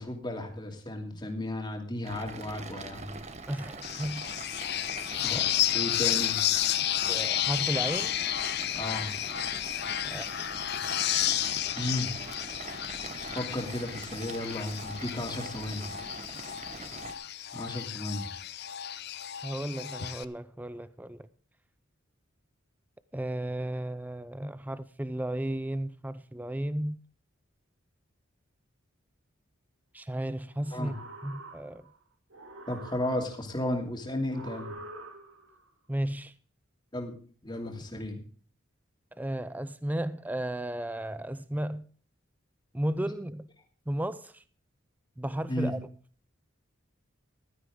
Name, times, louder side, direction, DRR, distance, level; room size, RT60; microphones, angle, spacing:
voice 1, 0.0-3.2 5.2-5.5 5.7-6.5 8.8-9.1 11.8-12.1 13.3-15.9 17.5-18.3 30.7-30.9 32.7-34.8 36.9-37.1 37.4-38.2 45.5-45.7, left 1 dB, 20° left, 2.7 m, -34 dB
sound 1, 2.0-17.1, right 3 dB, 35° right, 1.2 m, -43 dB
voice 2, 3.5-4.3 5.3-5.5 7.1-8.1 10.1-10.3 19.4-21.3 23.1-27.0 29.9-30.9 31.2-31.8 35.9-36.3 39.2-41.9 42.7-43.5 43.9-44.4 45.2-45.8, right 1 dB, 10° right, 0.5 m, -34 dB
sound 2, 3.8-20.2, left 12 dB, 55° left, 0.6 m, -32 dB
sound 3, 30.5-32.0 32.3-33.6 34.3-35.6, right 2 dB, 85° right, 2.4 m, -46 dB
15.0 x 12.5 x 3.7 m
head